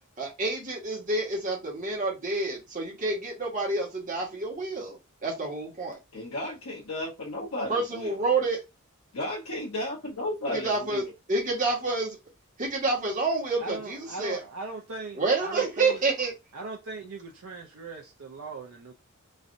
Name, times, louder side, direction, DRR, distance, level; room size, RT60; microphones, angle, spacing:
voice 1, 0.2-6.0 7.7-8.6 10.5-11.0 11.3-12.2 12.6-14.4 15.1-16.3, right 3 dB, 35° right, 1.3 m, -28 dB
voice 2, 6.1-8.1 9.1-11.1, left 1 dB, 80° left, 0.9 m, -34 dB
voice 3, 13.6-16.0 16.5-18.9, right 3 dB, 70° right, 0.5 m, -39 dB
3.1 x 2.6 x 2.6 m
head